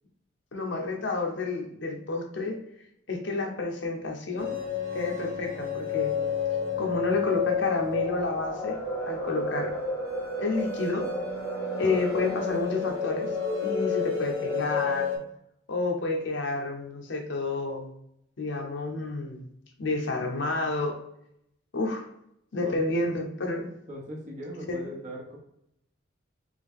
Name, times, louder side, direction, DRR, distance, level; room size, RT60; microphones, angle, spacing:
voice 1, 0.5-2.6 3.1-4.5 4.9-6.1 6.8-8.8 9.0-9.7 10.4-11.1 11.8-13.3 13.6-15.2 15.7-17.9 18.4-19.4 19.8-21.0 21.7-22.1 22.5-23.7 24.7-24.8, left 3 dB, 65° left, 2 dB, 0.8 m, -30 dB
sound 1, 4.4-15.2, left 4 dB, 5° right, 1.1 m, -30 dB
voice 2, 22.6-23.2 23.9-25.4, equal, 40° right, -3 dB, 0.9 m, -40 dB
3.6 x 3.3 x 3.6 m, 0.77 s
head